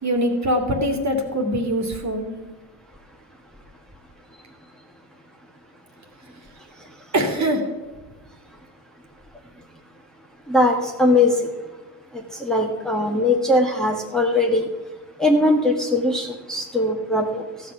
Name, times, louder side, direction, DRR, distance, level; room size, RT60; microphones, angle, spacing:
voice 1, 0.0-2.4 7.1-7.6, equal, 35° right, 4 dB, 2.3 m, -23 dB
voice 2, 10.5-11.5 12.1-14.7 15.2-17.4, left 2 dB, ahead, 0 dB, 1.7 m, -20 dB
14.5 x 5.9 x 5.9 m, 1.2 s
hypercardioid pair, 55°, 47 cm